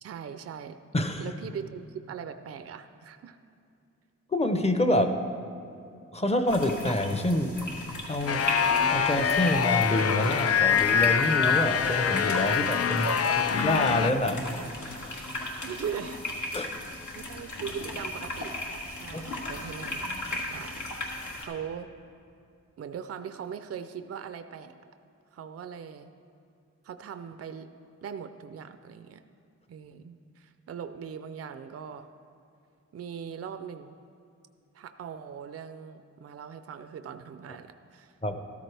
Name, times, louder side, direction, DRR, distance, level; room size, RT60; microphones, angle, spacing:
voice 1, 0.0-0.8 1.2-3.4 13.0-13.4 15.4-16.3 17.1-18.6 18.9-20.1 20.3-20.8 21.4-21.9 22.8-24.7 25.3-26.1 26.8-27.7 28.0-29.2 29.7-32.1 32.9-34.0 34.7-38.1, right 7 dB, 55° right, 9 dB, 0.5 m, -40 dB
voice 2, 0.9-1.2 4.3-5.2 6.1-7.6 8.1-8.4 8.9-13.1 13.5-14.5 16.5-16.7 19.1-19.2 38.2-38.4, left 1 dB, 20° left, 7 dB, 0.7 m, -27 dB
sound 1, 6.5-21.4, left 1 dB, 80° left, 1.7 m, -36 dB
sound 2, 8.3-14.1, left 7 dB, 55° left, 0.4 m, -25 dB
13.5 x 13.0 x 3.4 m, 2.5 s
wide cardioid pair, 130°, 30 cm